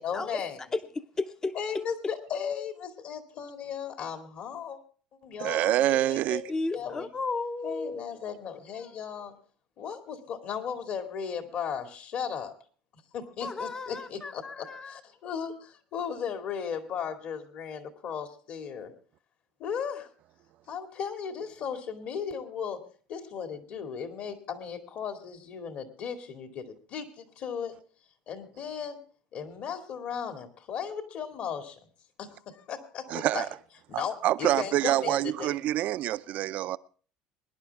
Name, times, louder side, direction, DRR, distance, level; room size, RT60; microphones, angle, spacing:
voice 1, 0.0-0.6 1.5-4.8 5.2-6.4 6.7-7.1 7.6-9.4 9.8-12.5 13.1-18.9 19.6-20.1 20.7-22.8 23.1-27.7 28.3-29.0 29.3-31.9 32.2-33.5 33.9-35.6, left 7 dB, 55° left, 2.2 m, -36 dB
voice 2, 0.7-1.5 6.5-8.0 13.4-15.0, left 3 dB, 20° left, 0.7 m, -33 dB
voice 3, 5.4-6.4 33.1-33.5 33.9-36.8, right 14 dB, 60° right, 0.5 m, -26 dB
22.5 x 10.5 x 3.4 m
supercardioid pair, 95°, 3 cm